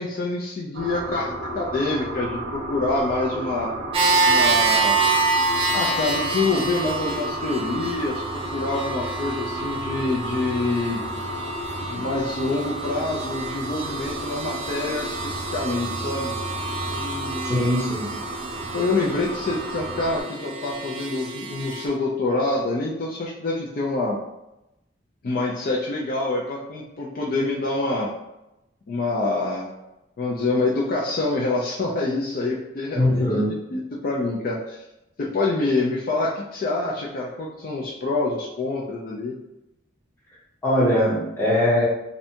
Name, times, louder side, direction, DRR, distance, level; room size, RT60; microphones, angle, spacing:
voice 1, 0.0-3.7 4.2-5.0 5.7-11.0 11.9-16.3 16.9-17.5 18.7-24.2 25.2-28.1 28.9-29.7 30.2-33.4 33.7-34.8 35.2-39.3, left 2 dB, 45° left, -3 dB, 0.3 m, -26 dB
sound 1, 0.7-20.2, right 2 dB, 75° right, 0.6 m, -32 dB
sound 2, 3.9-21.9, right 3 dB, 30° right, 0.3 m, -27 dB
voice 2, 17.4-18.1 32.9-33.5 40.6-41.8, left 1 dB, 10° left, -6 dB, 0.7 m, -21 dB
2.6 x 2.1 x 2.7 m, 0.93 s
head